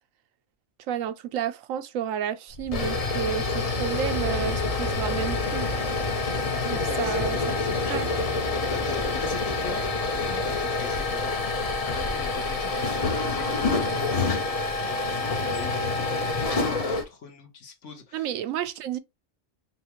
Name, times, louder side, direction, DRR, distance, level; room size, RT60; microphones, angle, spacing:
voice 1, 0.9-5.7 6.7-7.5 7.9-8.1 18.1-19.0, right 9 dB, 80° right, 1.0 m, -31 dB
sound 1, 2.5-17.0, left 3 dB, 35° left, 0.6 m, -27 dB
voice 2, 6.9-8.0 8.7-14.2 14.8-18.3, left 4 dB, 65° left, 1.3 m, -41 dB
5.6 x 2.3 x 2.9 m
omnidirectional pair, 1.4 m